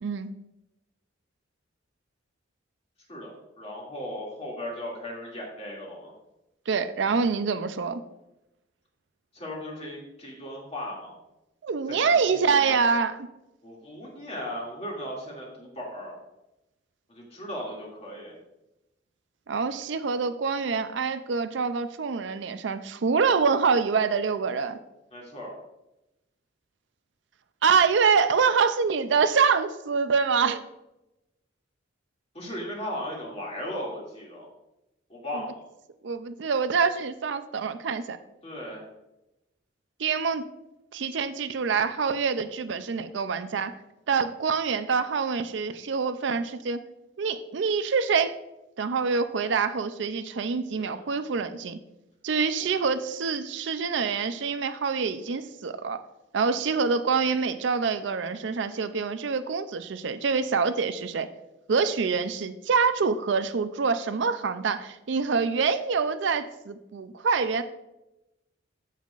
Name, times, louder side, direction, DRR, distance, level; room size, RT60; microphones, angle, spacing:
voice 1, 0.0-0.3 6.7-8.0 11.6-13.2 19.5-24.8 27.6-30.6 36.0-38.2 40.0-40.4 40.9-43.7 44.1-46.8 47.2-48.3 48.8-51.8 52.2-56.0 56.3-61.3 61.7-67.6, right 5 dB, 65° right, 11 dB, 0.4 m, -25 dB
voice 2, 3.1-6.1 9.3-11.1 11.9-12.8 13.6-16.2 17.1-18.4 25.1-25.6 32.3-34.5 35.1-35.6 38.4-38.9 50.8-51.1 52.6-52.7, equal, 35° left, -3 dB, 2.5 m, -37 dB
14.5 x 5.7 x 2.5 m, 0.93 s
head